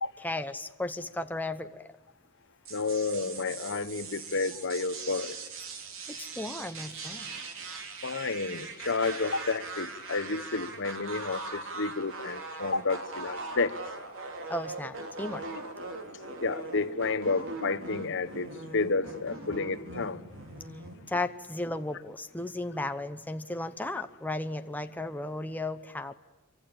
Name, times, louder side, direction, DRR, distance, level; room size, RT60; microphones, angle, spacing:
voice 1, 0.2-1.8 6.2-7.3 14.5-15.4 21.1-26.1, left 2 dB, 10° left, 0.9 m, -35 dB
sound 1, 2.6-21.1, right 3 dB, 60° right, 3.3 m, -41 dB
voice 2, 2.7-5.3 8.0-13.8 16.4-20.2, left 4 dB, 55° left, 1.1 m, -31 dB
27.0 x 24.5 x 8.8 m
head